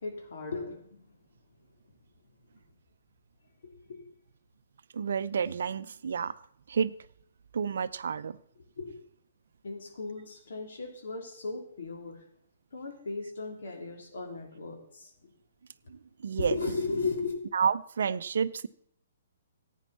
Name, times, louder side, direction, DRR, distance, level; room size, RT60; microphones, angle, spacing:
voice 1, 0.0-0.8 3.9-4.0 8.8-9.0 9.6-12.2 12.7-15.1 16.4-17.4, left 3 dB, 60° left, 2 dB, 3.2 m, -35 dB
voice 2, 4.9-6.3 6.7-6.9 7.5-8.4 16.2-16.5 17.5-18.7, right 6 dB, 60° right, 14 dB, 0.6 m, -29 dB
15.0 x 9.3 x 4.2 m, 0.67 s
figure-of-eight pair, 125°, 0 cm